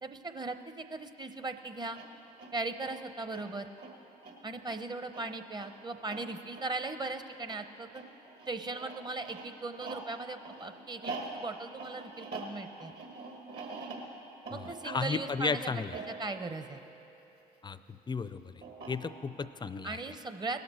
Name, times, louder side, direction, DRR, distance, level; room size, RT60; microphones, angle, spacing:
voice 1, 0.0-2.0 2.5-3.7 4.4-8.0 8.5-12.9 14.5-16.8 19.8-20.6, right 3 dB, 20° right, 8 dB, 0.8 m, -38 dB
sound 1, 1.8-17.6 18.6-19.5, right 3 dB, 60° right, 1.9 m, -45 dB
voice 2, 14.5-15.9 17.6-18.4 18.9-20.0, left 4 dB, 25° left, 14 dB, 0.5 m, -34 dB
18.5 x 6.7 x 4.4 m, 3.0 s
hypercardioid pair, 60°, 19 cm